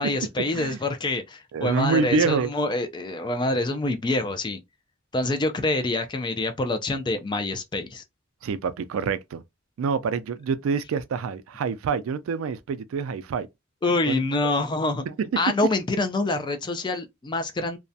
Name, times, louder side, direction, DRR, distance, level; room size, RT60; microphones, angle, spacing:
voice 1, 0.0-4.6 5.1-8.0 13.8-15.0 15.4-17.8, left 2 dB, 20° left, 0.3 m, -26 dB
voice 2, 1.5-2.5 8.4-9.4 9.8-13.5 14.1-14.2 15.1-15.3, right 5 dB, 80° right, 0.3 m, -26 dB
2.3 x 2.1 x 2.6 m
head